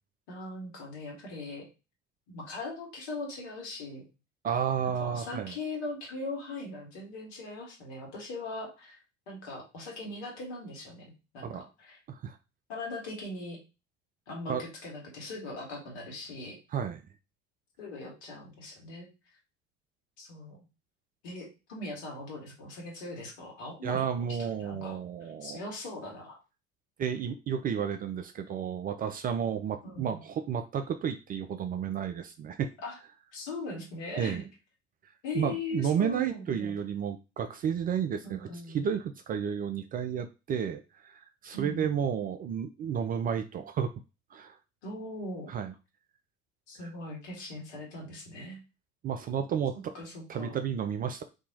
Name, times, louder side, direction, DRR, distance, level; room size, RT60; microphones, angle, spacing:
voice 1, 0.3-1.6 2.3-4.0 5.0-9.0 9.3-12.0 12.7-13.6 14.3-16.6 17.8-19.1 20.2-20.6 21.2-24.3 24.6-26.4 29.8-30.2 32.8-33.0 33.3-34.4 35.2-36.8 38.2-38.8 41.5-42.1 44.8-45.5 46.7-48.6 49.7-50.6, left 2 dB, 65° left, -1 dB, 1.6 m, -40 dB
voice 2, 4.4-5.5 11.4-11.6 12.1-12.4 14.5-14.6 16.7-17.0 23.8-25.6 27.0-32.7 34.2-34.4 35.3-38.5 38.7-43.9 44.3-44.6 45.5-45.7 49.0-49.7 50.3-51.2, right 8 dB, 25° right, 7 dB, 0.3 m, -32 dB
2.8 x 2.7 x 3.9 m, 0.29 s
figure-of-eight pair, 65°, 36 cm